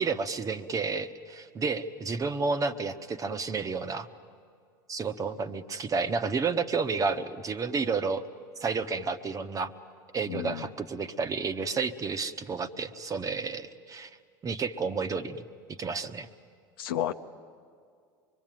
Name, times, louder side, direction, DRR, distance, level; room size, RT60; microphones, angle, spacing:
voice 1, 0.0-4.1 4.9-8.2 8.6-9.7 10.1-14.1 14.4-15.4 15.8-16.3, right 4 dB, 30° right, 10 dB, 1.2 m, -31 dB
voice 2, 10.3-10.6 16.8-17.1, left 12 dB, 75° left, 7 dB, 0.9 m, -31 dB
24.5 x 23.0 x 9.1 m, 2.2 s
hypercardioid pair, 85°, 12 cm